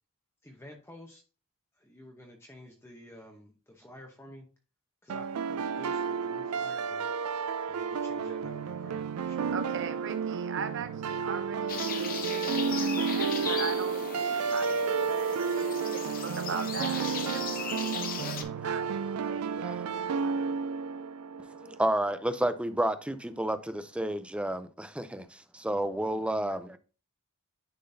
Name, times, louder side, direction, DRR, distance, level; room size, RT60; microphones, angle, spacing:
voice 1, 0.4-1.2 1.7-4.5 5.0-7.1 7.7-10.0, left 1 dB, 10° left, 0.9 m, -51 dB
sound 1, 5.1-22.0, right 6 dB, 90° right, 0.4 m, -31 dB
voice 2, 9.5-17.1 18.6-18.9 19.3-19.7 20.2-20.4, right 5 dB, 60° right, 0.9 m, -40 dB
sound 2, 11.7-18.4, left 6 dB, 40° left, 0.8 m, -37 dB
voice 3, 17.3-17.9 19.5-19.7 21.6-26.8, right 1 dB, 5° right, 0.4 m, -31 dB
10.0 x 3.8 x 2.6 m
head